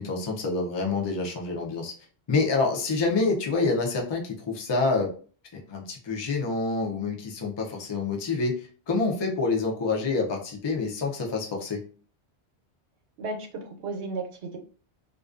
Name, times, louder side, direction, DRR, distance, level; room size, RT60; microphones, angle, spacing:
voice 1, 0.0-1.9 2.3-5.1 5.7-11.8, left 3 dB, 35° left, 0 dB, 0.4 m, -27 dB
voice 2, 13.2-14.6, right 3 dB, 80° right, 3 dB, 0.9 m, -34 dB
2.4 x 2.2 x 2.4 m, 0.41 s
omnidirectional pair, 1.1 m